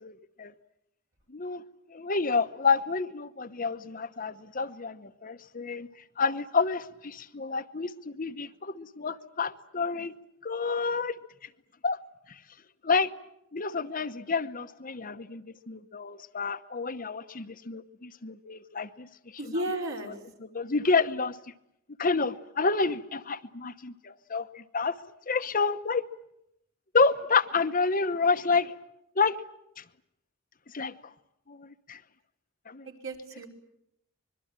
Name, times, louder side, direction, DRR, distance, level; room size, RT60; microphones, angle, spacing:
voice 1, 0.0-0.5 1.3-1.6 1.9-5.9 6.2-10.1 10.4-11.1 11.8-12.0 12.8-13.1 13.5-19.1 19.4-19.5 20.5-21.4 22.0-25.0 25.3-26.0 26.9-28.7 29.2-29.3 30.7-30.9 31.5-32.0 32.7-32.9, left 4 dB, 40° left, 1.0 m, -29 dB
voice 2, 19.4-20.1 32.8-33.5, right 1 dB, 75° right, 5.1 m, -33 dB
25.5 x 22.0 x 8.9 m
head